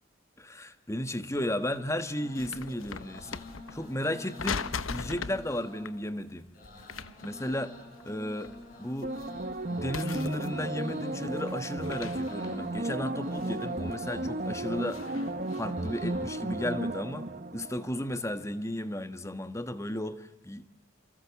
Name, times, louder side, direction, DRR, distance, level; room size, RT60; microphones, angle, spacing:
voice 1, 0.4-3.4 3.7-6.5 7.2-7.8 8.0-9.1 9.7-15.0 15.5-17.3 17.5-20.7, left 1 dB, 15° left, 10 dB, 1.4 m, -34 dB
sound 1, 1.3-1.4 1.8-4.0 4.3-5.5 5.8-6.0 6.6-8.1 8.4-9.7 9.9-10.8 11.2-13.8 14.3-15.7, left 5 dB, 80° left, 1.0 m, -40 dB
sound 2, 2.1-17.0, left 1 dB, 40° left, 6.8 m, -48 dB
sound 3, 9.0-18.4 18.8-18.9, right 2 dB, 45° right, 1.4 m, -34 dB
28.5 x 28.0 x 7.1 m, 0.90 s
head